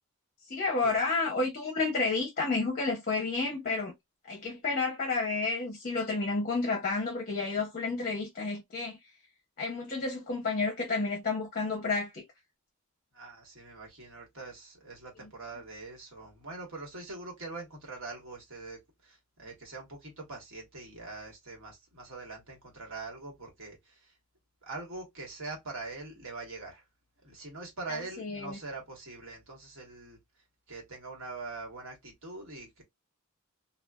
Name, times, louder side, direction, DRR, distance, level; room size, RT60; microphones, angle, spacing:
voice 1, 0.5-3.9 4.2-9.0 9.6-12.2 27.9-28.6, left 3 dB, 40° left, 0.7 m, -31 dB
voice 2, 13.1-24.1 24.6-26.8 27.2-30.2 30.7-32.8, right 3 dB, 65° right, 1.2 m, -43 dB
2.4 x 2.3 x 2.2 m
head